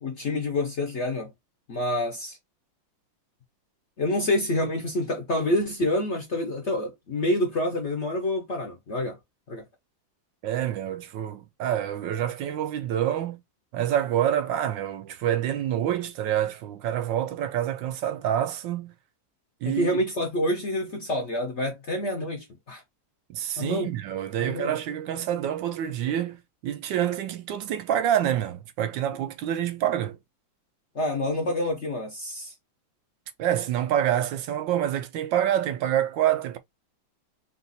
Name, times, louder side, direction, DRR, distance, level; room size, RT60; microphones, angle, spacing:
voice 1, 0.0-1.3 1.7-2.4 4.0-9.2 9.5-9.6 19.6-22.8 23.6-23.9 24.4-24.7 30.9-32.5, left 1 dB, 50° left, 0.9 m, -27 dB
voice 2, 10.4-13.4 13.7-18.9 19.6-20.0 23.3-30.2 33.4-36.6, right 11 dB, 75° right, 1.3 m, -27 dB
4.0 x 2.4 x 4.0 m
omnidirectional pair, 2.1 m